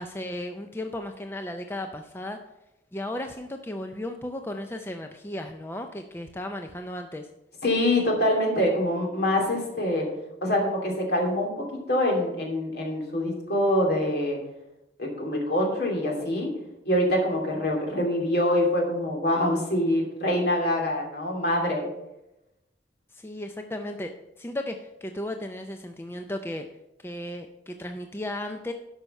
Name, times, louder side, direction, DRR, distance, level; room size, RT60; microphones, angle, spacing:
voice 1, 0.0-2.4 2.9-7.3 23.1-24.1 24.4-26.7 27.0-28.7, left 1 dB, 15° left, 5 dB, 0.5 m, -35 dB
voice 2, 7.6-10.1 10.4-14.4 15.0-16.5 16.8-21.9, left 1 dB, 60° left, 0 dB, 2.7 m, -25 dB
11.5 x 5.7 x 5.4 m, 0.93 s
head